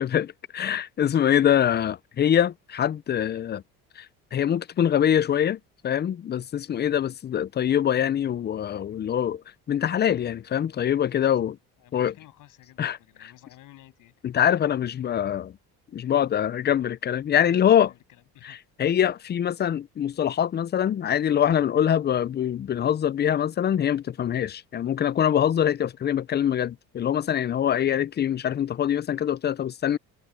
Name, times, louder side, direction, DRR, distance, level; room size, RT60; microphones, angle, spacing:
voice 1, 0.0-3.6 4.0-4.1 4.3-5.6 5.8-9.4 9.7-11.6 11.9-12.1 12.8-13.3 14.2-15.5 15.9-17.9 18.4-30.0, left 9 dB, 30° left, 0.5 m, -24 dB
voice 2, 11.8-14.4 17.4-18.6, left 15 dB, 70° left, 7.8 m, -53 dB
cardioid pair, 100°, 33 cm